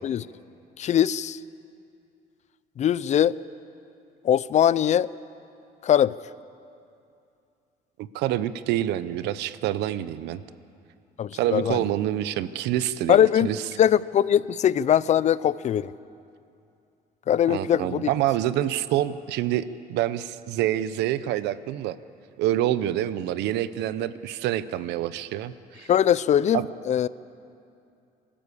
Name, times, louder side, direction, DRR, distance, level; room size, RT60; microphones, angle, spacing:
voice 1, 0.8-1.4 2.8-3.4 4.2-5.1 5.8-6.1 11.2-11.8 13.1-13.5 13.8-15.9 17.3-18.1 25.9-27.1, left 10 dB, 45° left, 19 dB, 0.5 m, -21 dB
voice 2, 8.0-10.4 11.3-13.6 17.5-22.0 22.4-25.9 26.5-26.7, right 12 dB, 85° right, 15 dB, 0.7 m, -27 dB
24.0 x 13.5 x 8.4 m, 2.6 s
cardioid pair, 110°, 17 cm